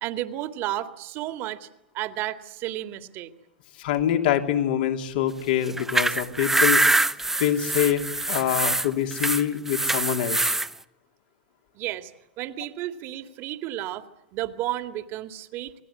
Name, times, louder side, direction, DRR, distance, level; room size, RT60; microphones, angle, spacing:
voice 1, 0.0-1.7 1.9-3.3 11.7-12.1 12.4-14.0 14.3-15.7, right 14 dB, 45° right, 9 dB, 2.2 m, -32 dB
voice 2, 3.8-6.8 7.4-10.5, left 10 dB, 65° left, 5 dB, 3.1 m, -25 dB
sound 1, 5.7-10.7, right 2 dB, 5° right, 0.9 m, -24 dB
28.0 x 20.0 x 9.8 m, 0.85 s
hypercardioid pair, 100°, 5 cm